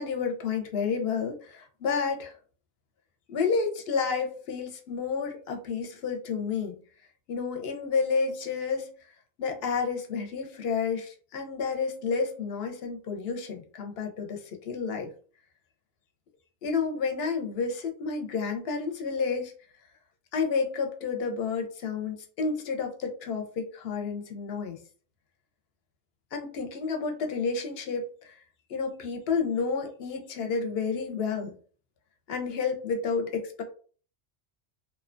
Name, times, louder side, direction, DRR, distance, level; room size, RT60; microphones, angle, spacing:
voice 1, 0.0-2.3 3.3-6.8 7.3-8.9 9.4-15.1 16.6-19.5 20.3-24.8 26.3-28.4 28.7-31.6 32.3-33.6, left 5 dB, 65° left, 4 dB, 0.8 m, -30 dB
2.7 x 2.2 x 2.4 m, 0.42 s
omnidirectional pair, 1.2 m